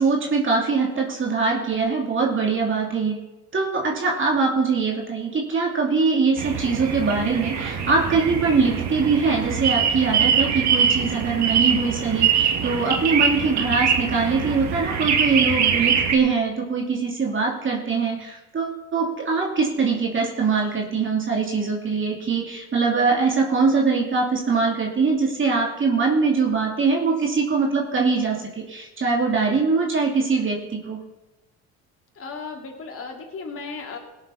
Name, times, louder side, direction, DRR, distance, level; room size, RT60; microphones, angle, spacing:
voice 1, 0.0-3.2 3.5-28.4 28.7-31.0, right 4 dB, 40° right, -1 dB, 2.9 m, -22 dB
sound 1, 6.4-16.2, right 7 dB, 55° right, 2.0 m, -23 dB
voice 2, 32.1-34.0, left 4 dB, 45° left, 1 dB, 3.0 m, -35 dB
17.5 x 7.5 x 5.7 m, 1.1 s
supercardioid pair, 80°, 32 cm